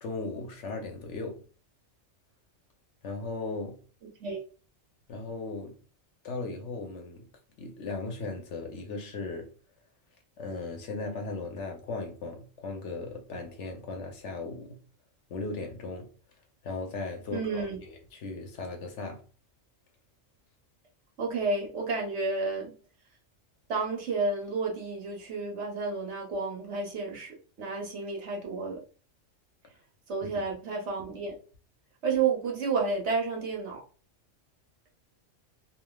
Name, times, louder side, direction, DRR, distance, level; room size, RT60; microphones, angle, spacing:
voice 1, 0.0-1.5 3.0-3.9 5.1-5.8 6.2-7.3 7.6-9.5 10.4-14.9 15.3-16.1 16.6-19.3, left 3 dB, 70° left, 0.9 m, -37 dB
voice 2, 17.3-17.8 21.2-22.7 23.7-28.8 30.1-31.3 32.0-33.8, right 4 dB, 65° right, 1.2 m, -31 dB
3.2 x 2.3 x 2.2 m
omnidirectional pair, 1.3 m